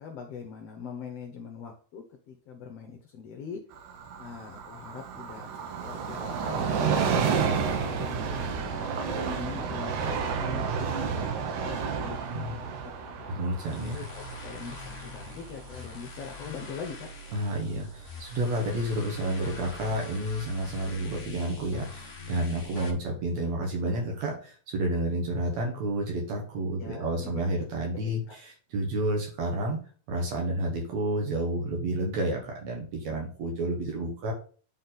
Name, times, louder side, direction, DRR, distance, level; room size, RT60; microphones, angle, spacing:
voice 1, 0.0-3.6 4.2-5.5 5.8-7.0 7.4-12.2 12.6-13.4 13.9-17.1 26.8-27.3 28.0-28.4, left 6 dB, 65° left, 3 dB, 1.8 m, -42 dB
Train, 3.7-17.0 17.4-17.5, right 6 dB, 85° right, 2.4 m, -31 dB
voice 2, 13.3-14.1 17.3-29.8 30.1-34.3, right 1 dB, 65° right, 1 dB, 2.6 m, -30 dB
sound 1, 13.5-22.9, left 2 dB, 40° left, 1.0 m, -43 dB
9.4 x 4.2 x 4.0 m, 0.41 s
omnidirectional pair, 3.4 m